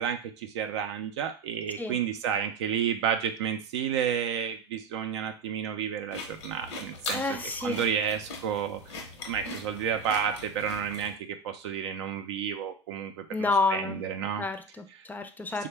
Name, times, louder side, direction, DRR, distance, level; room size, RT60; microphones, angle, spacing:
voice 1, 0.0-8.9 9.3-14.5 15.6-15.7, right 8 dB, 70° right, 7 dB, 0.4 m, -31 dB
sound 1, 6.1-11.1, left 3 dB, 70° left, 0.8 m, -41 dB
voice 2, 7.1-7.8 13.3-14.0 14.4-15.7, left 3 dB, 10° left, 8 dB, 0.5 m, -29 dB
3.4 x 2.1 x 3.2 m, 0.33 s
hypercardioid pair, 80°, 15 cm